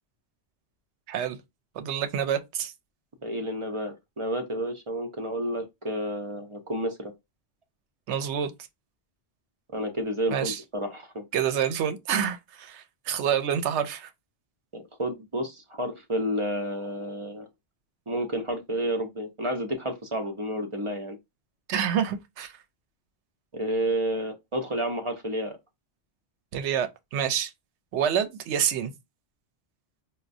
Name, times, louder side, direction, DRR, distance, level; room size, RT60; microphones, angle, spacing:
voice 1, 1.8-2.7 8.1-8.5 10.3-10.6 11.3-14.1 21.7-22.5 26.5-27.5 27.9-28.9, right 8 dB, 85° right, 0.9 m, -27 dB
voice 2, 3.2-7.1 9.7-11.2 14.7-17.5 18.1-21.2 23.5-25.6, right 1 dB, 35° right, 0.5 m, -30 dB
4.2 x 2.2 x 2.5 m
omnidirectional pair, 1.1 m